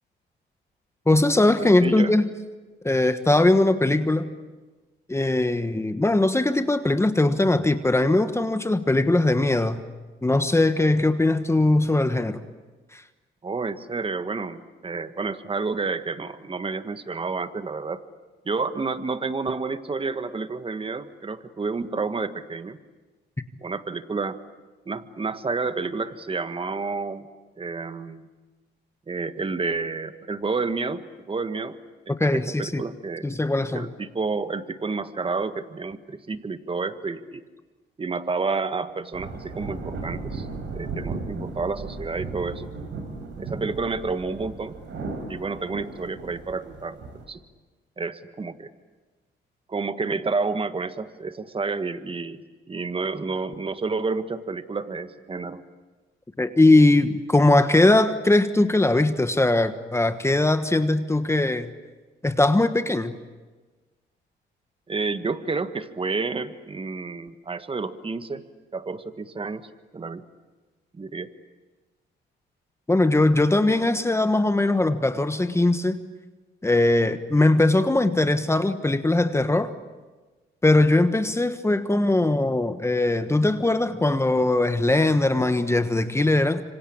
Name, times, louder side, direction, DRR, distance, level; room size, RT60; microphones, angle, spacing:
voice 1, 1.1-2.2 2.8-4.3 5.1-9.8 10.2-12.5 12.9-13.0 32.2-32.8 33.2-33.9 56.4-61.7 62.2-63.1 72.9-76.0 76.6-79.7 80.6-86.6, left 2 dB, 15° left, 10 dB, 1.3 m, -20 dB
voice 2, 1.6-2.1 13.4-18.0 18.4-22.8 23.6-24.4 24.8-27.3 27.6-28.3 29.1-31.8 32.2-33.2 33.7-37.4 38.0-40.5 40.7-42.7 43.4-44.8 45.1-47.0 47.3-47.4 48.0-48.7 49.7-55.6 64.9-68.4 68.7-70.2 70.9-71.3, right 4 dB, 25° right, 11 dB, 1.6 m, -30 dB
sound 1, 39.1-47.2, right 3 dB, 75° right, 5.4 m, -36 dB
26.0 x 26.0 x 8.7 m, 1.3 s
cardioid pair, 90°, 20 cm